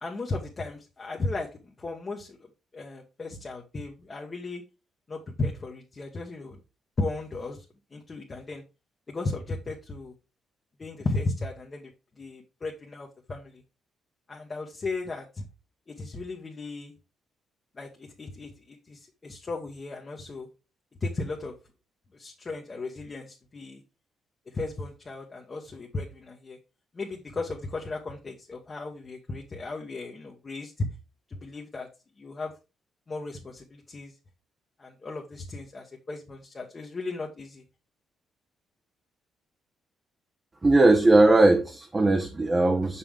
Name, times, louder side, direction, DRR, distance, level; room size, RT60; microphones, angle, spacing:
voice 1, 0.0-1.5 1.8-2.4 2.7-4.6 5.1-6.6 7.0-7.6 7.9-8.6 9.1-10.1 10.8-11.9 12.2-13.6 14.3-15.4 15.9-16.9 17.7-20.5 21.0-21.5 22.1-23.8 24.5-26.6 26.9-30.9 31.3-31.9 32.2-32.5 33.1-34.1 34.8-37.6, left 3 dB, 30° left, 1.2 m, -35 dB
voice 2, 40.6-43.0, right 2 dB, 25° right, 0.9 m, -19 dB
5.9 x 5.6 x 3.4 m
cardioid pair, 90°, 0 cm